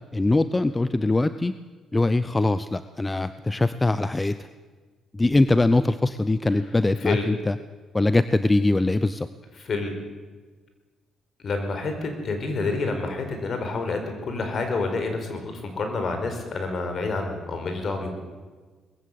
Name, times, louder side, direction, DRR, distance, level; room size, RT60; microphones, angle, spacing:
voice 1, 0.1-1.5 1.9-4.4 5.1-7.6 7.9-9.3, left 2 dB, 15° left, 13 dB, 0.7 m, -22 dB
voice 2, 9.6-9.9 11.4-18.1, left 3 dB, 50° left, 6 dB, 4.7 m, -28 dB
20.5 x 15.0 x 8.5 m, 1.4 s
cardioid pair, 90°, 0 cm